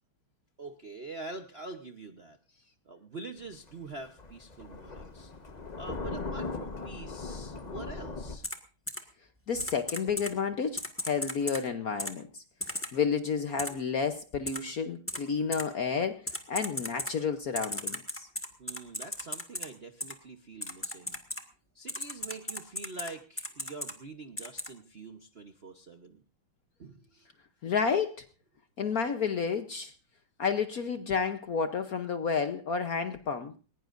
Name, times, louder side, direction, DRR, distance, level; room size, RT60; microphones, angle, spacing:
voice 1, 0.6-2.4 2.8-5.3 5.8-8.5 13.7-13.8 18.6-21.2 21.7-26.2 26.8-27.1, right 3 dB, 50° right, 6 dB, 0.7 m, -45 dB
Thunder, 3.4-8.4, left 3 dB, 30° left, 0.8 m, -39 dB
Typing, 8.4-8.6 8.9-9.0 9.6-10.3 10.8-11.6 12.0-12.1 12.6-12.9 13.6-13.7 14.5-14.6 15.1-15.2 15.5-15.6 16.3-17.1 17.6-19.7 20.0-20.1 20.6-21.4 21.9-23.1 23.4-23.9 24.4-24.7, left 1 dB, 5° left, 1.2 m, -35 dB
voice 2, 9.5-12.4 12.9-18.3 27.6-28.3 28.8-29.9 30.4-33.5, left 6 dB, 60° left, 9 dB, 1.0 m, -31 dB
20.5 x 19.5 x 2.6 m, 0.34 s
omnidirectional pair, 2.4 m